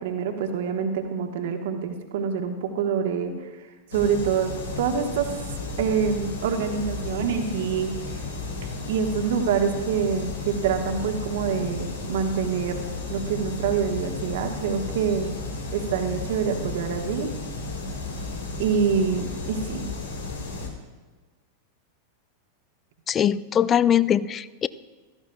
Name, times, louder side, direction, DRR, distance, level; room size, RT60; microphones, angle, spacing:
voice 1, 0.0-3.5 3.9-5.3 5.8-8.0 8.6-15.3 15.7-17.4 18.6-19.9, right 6 dB, 55° right, 5 dB, 1.3 m, -26 dB
sound 1, 3.9-20.7, left 3 dB, 70° left, 1.9 m, -33 dB
voice 2, 23.1-24.7, left 9 dB, 25° left, 18 dB, 0.4 m, -21 dB
16.0 x 14.0 x 2.3 m, 1.3 s
figure-of-eight pair, 90°, 0 cm